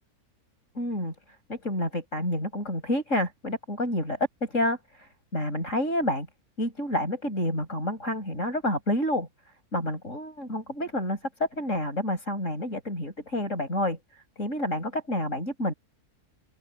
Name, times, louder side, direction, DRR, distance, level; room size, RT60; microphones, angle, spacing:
voice 1, 0.7-1.1 1.5-6.3 6.6-9.3 9.7-15.7, left 1 dB, 55° left, 8.1 m, -29 dB
open air
omnidirectional pair, 1.6 m